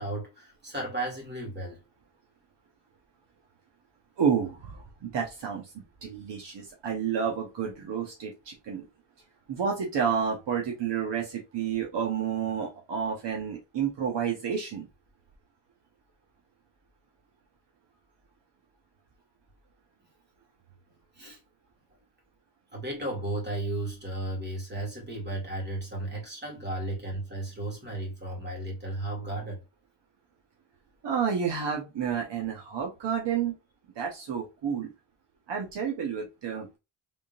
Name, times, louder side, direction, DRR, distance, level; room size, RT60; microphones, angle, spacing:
voice 1, 0.0-1.8 21.1-21.4 22.7-29.6, right 1 dB, 20° right, 2.1 m, -34 dB
voice 2, 4.2-5.7 6.0-8.9 9.5-14.9 31.0-33.5 33.9-34.9 35.5-36.8, right 7 dB, 60° right, 1.1 m, -30 dB
3.7 x 3.4 x 2.6 m
cardioid pair, 115°, 48 cm